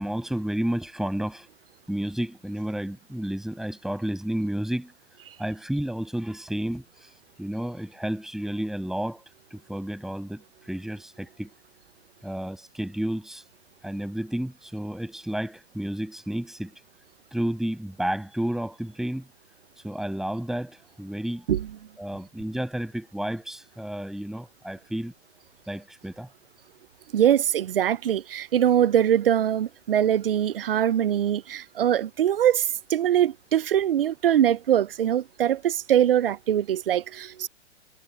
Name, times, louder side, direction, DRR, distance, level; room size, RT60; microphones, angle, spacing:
voice 1, 0.0-1.5 1.9-4.9 5.4-7.1 7.4-9.2 9.5-11.5 12.2-13.4 13.8-16.7 17.3-19.2 19.8-21.4 22.0-25.1 25.7-26.3, right 1 dB, ahead, 7.3 m, -31 dB
voice 2, 27.1-37.5, right 10 dB, 55° right, 0.9 m, -22 dB
figure-of-eight pair, 115°, 35 cm